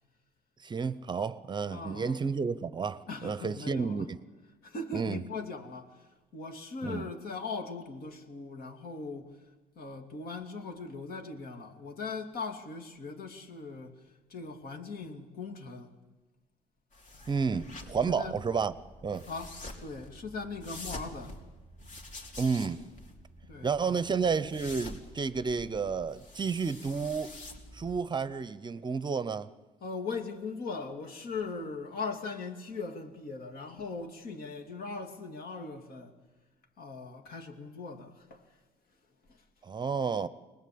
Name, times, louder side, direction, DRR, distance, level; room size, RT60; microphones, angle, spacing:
voice 1, 0.6-4.2 4.9-5.2 6.8-7.1 17.3-18.7 19.0-19.2 22.4-22.8 23.6-27.4 27.7-29.5 39.6-40.3, right 5 dB, 25° right, 0.7 m, -31 dB
voice 2, 1.7-2.2 3.1-4.1 4.6-9.4 9.7-15.9 18.1-18.4 19.3-21.4 23.5-24.0 29.8-36.2 36.8-38.6 39.3-39.4, left 4 dB, 65° left, 2.8 m, -40 dB
sound 1, 16.9-28.0, left 1 dB, 50° left, 3.6 m, -47 dB
24.5 x 20.0 x 8.6 m
cardioid pair, 110°, 17 cm